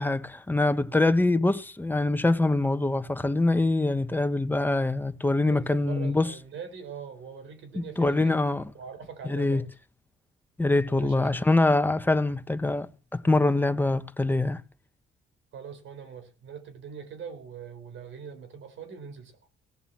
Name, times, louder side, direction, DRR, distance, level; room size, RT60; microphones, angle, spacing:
voice 1, 0.0-6.3 7.7-8.7 9.2-9.6 10.6-14.6, left 2 dB, 10° left, 1.2 m, -24 dB
voice 2, 5.4-8.3 8.7-9.6 10.9-11.4 15.5-19.3, right 7 dB, 75° right, 4.2 m, -42 dB
17.0 x 7.1 x 7.4 m
cardioid pair, 90°, 20 cm